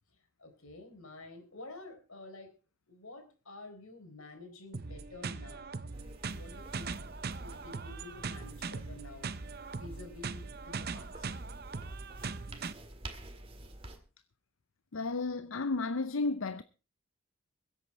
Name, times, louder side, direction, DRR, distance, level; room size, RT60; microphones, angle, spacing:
voice 1, 0.4-2.5 2.9-5.7 6.2-6.9 7.4-9.3 9.7-11.3, left 2 dB, 90° left, 4.1 m, -50 dB
sound 1, 4.7-12.7, right 4 dB, 45° right, 0.7 m, -40 dB
sound 2, 5.9-14.0, right 1 dB, 25° right, 1.7 m, -50 dB
voice 2, 14.9-16.6, left 3 dB, 70° left, 0.6 m, -32 dB
22.5 x 8.3 x 4.3 m
head